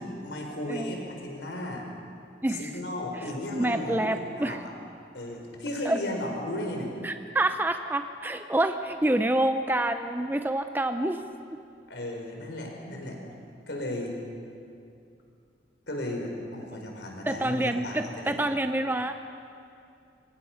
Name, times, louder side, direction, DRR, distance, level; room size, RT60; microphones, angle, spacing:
voice 1, 0.0-1.9 2.5-4.7 5.1-6.9 11.9-13.2 13.7-14.1 15.9-18.4, left 1 dB, 80° left, 1 dB, 4.2 m, -35 dB
voice 2, 0.7-1.0 2.4-2.7 3.5-4.6 5.8-6.0 7.0-11.2 17.3-19.2, right 1 dB, 10° right, 7 dB, 0.6 m, -27 dB
25.0 x 22.0 x 5.8 m, 2.5 s
head